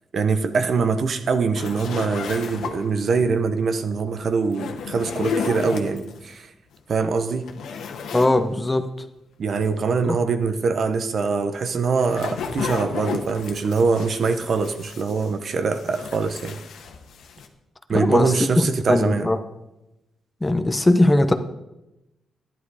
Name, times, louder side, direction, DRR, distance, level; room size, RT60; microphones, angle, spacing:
voice 1, 0.1-6.5 6.9-7.5 9.4-16.6 17.9-19.3, right 4 dB, 50° right, 0.9 m, -23 dB
sound 1, 1.6-3.0 4.4-6.2 6.7-6.8 7.2-8.4 8.7-8.8 11.6-15.4 15.7-17.5, left 6 dB, 80° left, 1.4 m, -33 dB
voice 2, 8.1-8.9 10.0-10.2 17.9-19.4 20.4-21.3, left 1 dB, 15° left, 0.8 m, -20 dB
12.5 x 11.0 x 4.9 m
cardioid pair, 115°, 0 cm